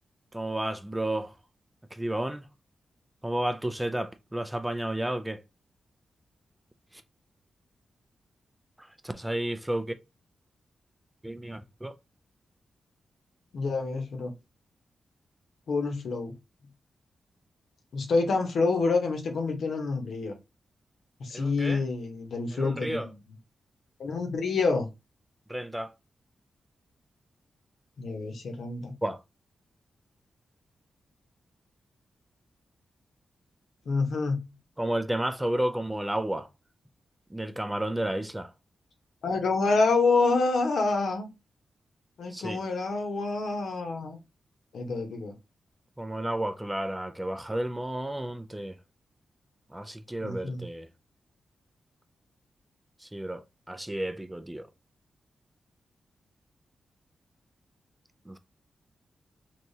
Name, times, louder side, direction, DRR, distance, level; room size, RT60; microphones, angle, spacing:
voice 1, 0.3-1.4 1.9-2.5 3.2-5.4 6.9-7.0 8.8-10.0 11.2-12.0 21.3-21.8 22.5-23.1 25.5-25.9 29.0-29.2 34.8-36.5 37.3-38.5 42.3-42.6 46.0-48.8 49.7-50.9 53.0-54.7 58.3-58.4, right 1 dB, 10° right, 0.4 m, -32 dB
voice 2, 13.5-14.3 15.7-16.3 17.9-20.3 21.2-23.2 24.0-24.9 28.0-28.9 33.9-34.5 39.2-41.3 42.2-44.2 44.7-45.3 50.2-50.6, left 3 dB, 75° left, 1.0 m, -27 dB
3.4 x 2.9 x 2.7 m
cardioid pair, 95°, 0 cm